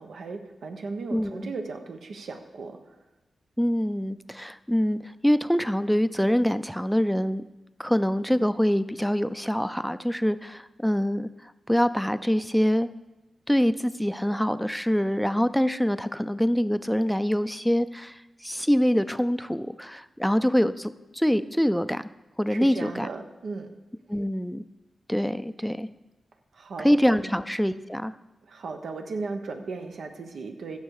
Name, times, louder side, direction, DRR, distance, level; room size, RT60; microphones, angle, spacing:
voice 1, 0.0-3.0 22.5-23.7 26.5-26.9 27.2-27.4 28.4-30.8, right 4 dB, 80° right, 5 dB, 1.2 m, -36 dB
voice 2, 1.1-1.5 3.6-7.4 7.8-12.9 13.5-22.1 22.4-23.1 24.1-24.6 25.1-25.9 26.8-28.1, equal, ahead, 13 dB, 0.5 m, -25 dB
15.5 x 6.6 x 4.8 m, 1.1 s
cardioid pair, 70°, 0 cm